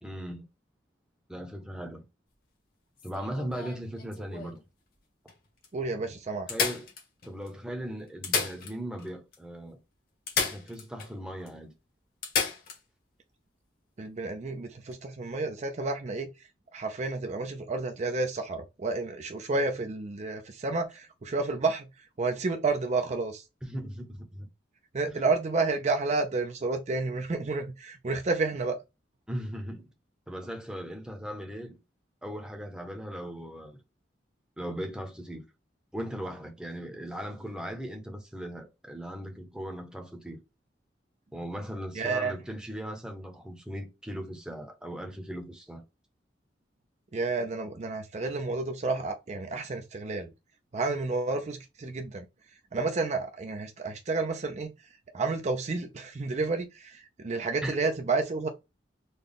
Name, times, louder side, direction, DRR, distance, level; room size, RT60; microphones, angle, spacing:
voice 1, 0.0-0.5 1.3-2.0 3.0-4.6 6.5-6.9 7.2-9.8 10.4-11.7 23.6-24.5 29.3-29.9 30.3-31.8 32.2-33.8 34.6-35.4 35.9-40.4 41.3-45.8 57.6-57.8, equal, 5° right, 0.8 m, -38 dB
sound 1, 3.0-4.6 5.3-5.4 5.6-5.7 6.5-7.5 8.1-9.1 9.3-9.4 10.3-11.1 11.5-11.6 12.2-12.8 14.8-14.9, left 5 dB, 50° left, 1.3 m, -32 dB
voice 2, 5.7-6.5 14.0-16.5 16.7-23.4 24.9-28.8 41.9-42.4 47.1-50.3 50.7-52.3 52.7-54.7 55.1-58.5, right 3 dB, 40° right, 0.5 m, -30 dB
4.0 x 2.3 x 3.4 m
head